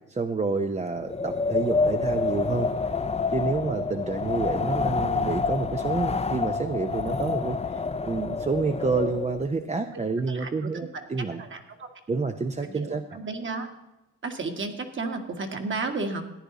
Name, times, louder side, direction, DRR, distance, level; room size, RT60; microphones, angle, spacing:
voice 1, 0.1-2.7 3.3-11.4 12.1-13.2, right 4 dB, 20° right, 6 dB, 0.8 m, -29 dB
Wind, 1.0-9.4, left 4 dB, 20° left, 0.8 m, -28 dB
voice 2, 10.3-11.0 11.4-11.9 12.6-13.7 14.2-16.3, right 3 dB, 40° right, 5 dB, 1.9 m, -33 dB
14.5 x 10.0 x 4.1 m, 0.98 s
cardioid pair, 90°, 30 cm